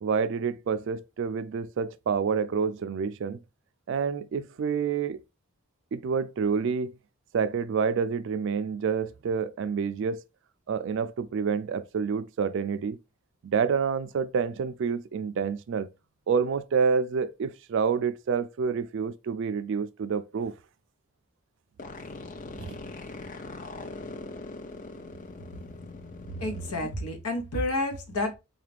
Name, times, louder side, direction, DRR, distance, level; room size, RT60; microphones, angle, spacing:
voice 1, 0.0-3.4 3.9-5.2 5.9-6.9 7.3-10.2 10.7-13.0 13.4-15.9 16.3-20.5 22.6-22.8 26.8-26.9, right 6 dB, 55° right, 0.3 m, -28 dB
sound 1, 21.8-26.8, left 3 dB, 35° left, 0.4 m, -41 dB
voice 2, 26.4-28.4, left 1 dB, 90° left, 1.0 m, -30 dB
3.9 x 2.4 x 3.3 m
head